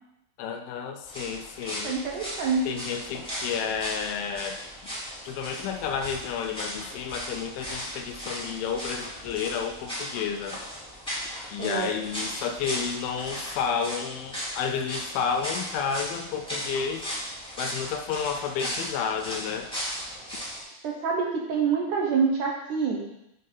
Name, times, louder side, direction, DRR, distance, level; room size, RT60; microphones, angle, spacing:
voice 1, 0.4-2.0 2.7-4.9 5.2-10.6 11.5-17.1 17.6-19.7, left 7 dB, 85° left, 7 dB, 2.5 m, -31 dB
sound 1, 1.0-20.6, equal, ahead, 1.7 m, -37 dB
voice 2, 1.8-2.7 11.6-11.9 20.8-23.0, right 5 dB, 70° right, -1 dB, 2.3 m, -26 dB
7.6 x 3.9 x 5.5 m, 0.83 s
omnidirectional pair, 4.2 m